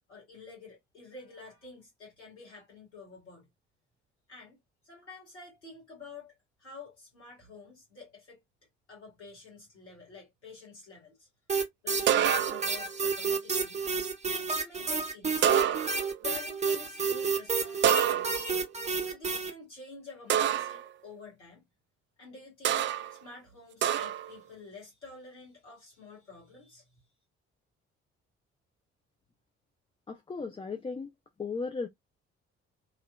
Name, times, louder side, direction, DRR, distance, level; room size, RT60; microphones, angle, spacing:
voice 1, 0.1-3.5 4.3-4.6 4.8-8.4 8.9-11.3 11.8-13.8 14.3-15.8 16.2-18.5 19.0-21.7 22.2-27.0, left 4 dB, 80° left, 1.5 m, -49 dB
sound 1, 11.5-19.5, right 4 dB, 20° right, 0.9 m, -30 dB
sound 2, 12.1-12.8 15.4-16.2 17.8-18.6 20.3-20.9 22.7-23.1 23.8-24.3, right 10 dB, 35° right, 0.4 m, -27 dB
voice 2, 30.1-31.1 31.4-31.9, left 4 dB, 15° left, 0.5 m, -35 dB
3.0 x 2.9 x 2.3 m
figure-of-eight pair, 40°, 34 cm